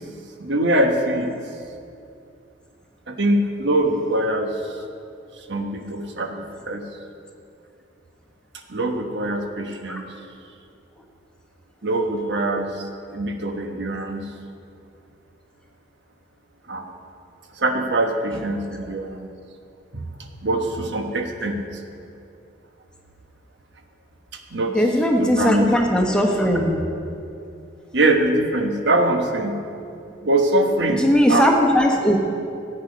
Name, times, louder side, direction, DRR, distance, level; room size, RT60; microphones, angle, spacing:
voice 1, 0.4-1.3 3.1-4.6 5.5-6.8 8.7-10.1 11.8-12.9 13.1-14.3 16.7-16.9 17.6-19.3 19.9-20.0 20.4-21.6 24.5-24.8 25.2-25.7 27.9-29.6 30.2-31.5, right 1 dB, 75° right, 4 dB, 1.2 m, -23 dB
voice 2, 24.7-26.8 31.0-32.2, equal, 5° left, 1 dB, 1.2 m, -18 dB
14.5 x 8.9 x 5.2 m, 2.6 s
head